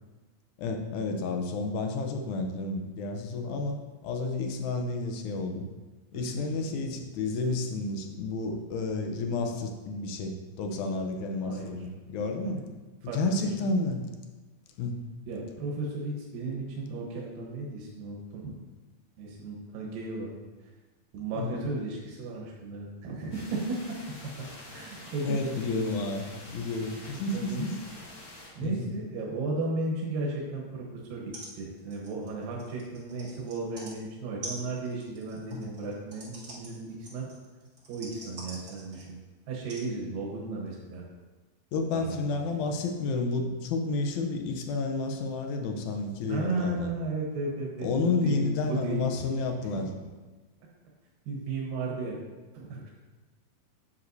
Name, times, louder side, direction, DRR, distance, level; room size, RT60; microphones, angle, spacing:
voice 1, 0.6-5.7 6.1-12.6 13.1-14.0 14.8-15.0 21.4-21.6 25.2-27.8 28.6-28.9 35.5-35.6 41.7-46.9 47.8-49.9, left 3 dB, 75° left, 5 dB, 1.9 m, -31 dB
voice 2, 6.1-6.8 11.4-11.8 12.5-12.6 13.0-13.7 15.3-18.5 19.2-20.3 21.1-24.0 24.7-25.7 27.3-27.7 28.6-37.3 37.9-39.2 39.5-41.0 41.9-42.6 46.3-49.3 49.6-49.9 51.3-52.2 52.5-52.9, right 3 dB, 80° right, -2 dB, 2.8 m, -35 dB
sound 1, 23.3-28.5, left 1 dB, 55° left, 3.1 m, -47 dB
sound 2, 31.0-31.1 31.3-31.5 31.8-33.9 34.4-39.2 39.7-39.9 40.7-40.8, right 1 dB, 45° right, 1.1 m, -45 dB
9.6 x 7.5 x 2.7 m, 1.3 s
omnidirectional pair, 4.0 m